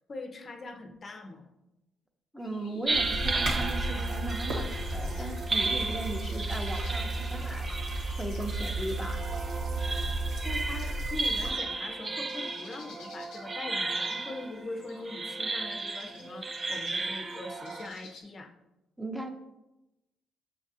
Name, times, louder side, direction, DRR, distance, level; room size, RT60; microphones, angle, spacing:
voice 1, 0.0-1.5 10.4-18.5, left 2 dB, 40° left, 5 dB, 0.6 m, -42 dB
voice 2, 2.3-7.7 8.2-9.2 19.0-19.3, right 1 dB, ahead, 3 dB, 0.7 m, -37 dB
sound 1, 2.4-18.2, left 4 dB, 85° left, 0.8 m, -55 dB
sound 2, 2.9-17.9, right 3 dB, 35° right, 0.4 m, -34 dB
sound 3, 2.9-11.5, right 2 dB, 70° right, 1.1 m, -33 dB
5.8 x 2.4 x 2.7 m, 0.93 s
supercardioid pair, 65°, 0 cm